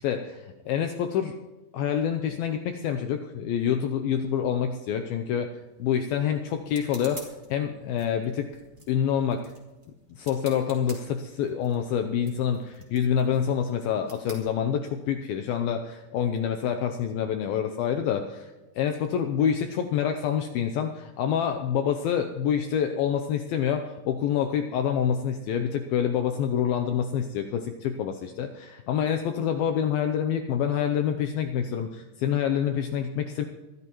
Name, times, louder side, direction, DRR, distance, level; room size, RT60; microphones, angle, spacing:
voice 1, 0.0-1.4 1.7-5.5 5.8-7.2 7.5-8.5 8.9-9.5 10.2-33.5, left 8 dB, 80° left, 6 dB, 2.2 m, -27 dB
sound 1, 5.4-15.2, right 2 dB, 25° right, 2.9 m, -50 dB
23.0 x 14.5 x 3.1 m, 1.1 s
omnidirectional pair, 5.1 m